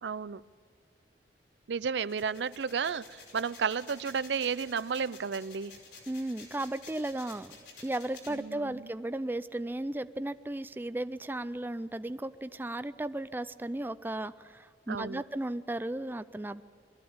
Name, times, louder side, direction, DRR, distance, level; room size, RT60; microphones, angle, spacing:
voice 1, 0.0-0.4 1.7-5.7 8.3-8.9 14.9-15.2, right 6 dB, 80° right, 17 dB, 0.5 m, -32 dB
sound 1, 2.0-8.4, left 4 dB, 80° left, 5.1 m, -51 dB
voice 2, 6.1-7.5 7.8-16.6, right 1 dB, 10° right, 13 dB, 0.4 m, -35 dB
22.0 x 14.0 x 8.7 m, 2.3 s
head